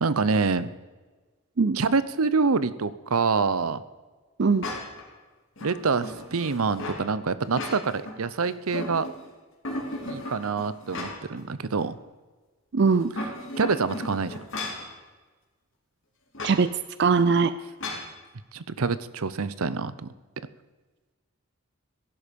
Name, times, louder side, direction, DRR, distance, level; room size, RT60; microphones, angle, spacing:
voice 1, 0.0-0.7 1.7-3.8 5.6-9.1 10.1-12.0 13.6-14.4 18.5-20.1, right 4 dB, 80° right, 15 dB, 0.7 m, -26 dB
sound 1, 4.6-5.1 5.6-7.0 7.4-8.2 8.5-9.3 9.6-11.4 11.8-11.9 12.9-14.9 16.3-16.6 17.8-18.1, left 1 dB, 60° left, 3.3 m, -35 dB
voice 2, 12.7-13.1 16.4-16.7 17.0-17.5, right 4 dB, 50° right, 13 dB, 0.5 m, -20 dB
16.5 x 11.0 x 5.3 m, 1.3 s
head